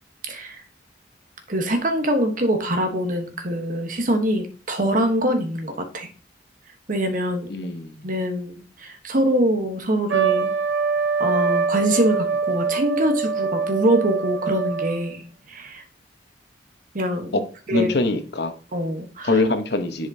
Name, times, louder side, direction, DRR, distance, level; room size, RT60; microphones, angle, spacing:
voice 1, 0.3-0.6 1.5-6.1 6.9-7.5 8.0-10.5 11.2-15.8 16.9-17.4 17.7-17.9 18.7-19.4, equal, 45° right, 6 dB, 1.1 m, -24 dB
voice 2, 7.5-8.0 17.3-17.4 17.7-18.5 19.2-20.1, left 2 dB, 60° left, 8 dB, 0.9 m, -23 dB
Trumpet, 10.1-15.1, right 5 dB, 65° right, 0.8 m, -24 dB
10.5 x 5.0 x 2.7 m, 0.41 s
head